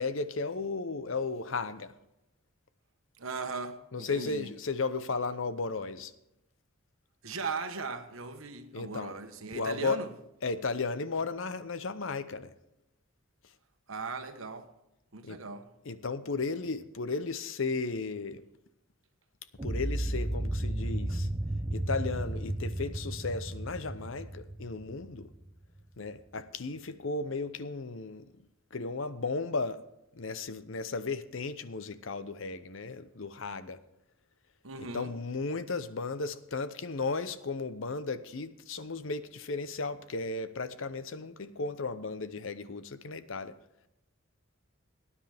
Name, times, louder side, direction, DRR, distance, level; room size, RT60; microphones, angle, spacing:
voice 1, 0.0-1.9 3.9-6.1 8.7-9.2 9.5-10.0 10.4-12.5 15.2-15.4 15.9-18.4 19.6-21.3 21.7-25.3 26.0-28.3 28.7-29.8 30.1-33.8 34.9-43.5, left 4 dB, 65° left, 0.7 m, -35 dB
voice 2, 3.2-4.5 7.2-10.1 13.9-14.7 15.1-15.7 21.1-21.2 34.6-35.1, right 4 dB, 70° right, 1.2 m, -38 dB
sound 1, 19.6-25.7, right 1 dB, 20° right, 0.6 m, -33 dB
18.5 x 9.9 x 3.5 m
head